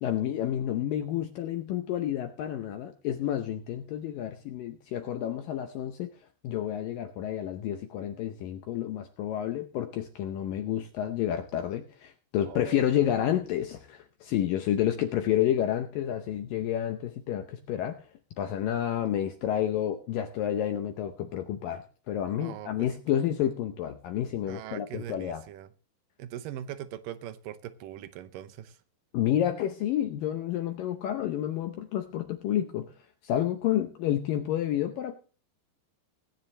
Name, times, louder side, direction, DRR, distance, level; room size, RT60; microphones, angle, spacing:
voice 1, 0.0-6.1 6.4-18.0 18.4-25.4 29.1-32.9 33.2-35.2, left 11 dB, 75° left, 6 dB, 2.1 m, -30 dB
voice 2, 12.5-13.0 22.4-22.9 24.5-25.7 26.2-28.8, right 11 dB, 80° right, 12 dB, 2.0 m, -41 dB
20.5 x 9.8 x 3.2 m, 0.38 s
omnidirectional pair, 4.8 m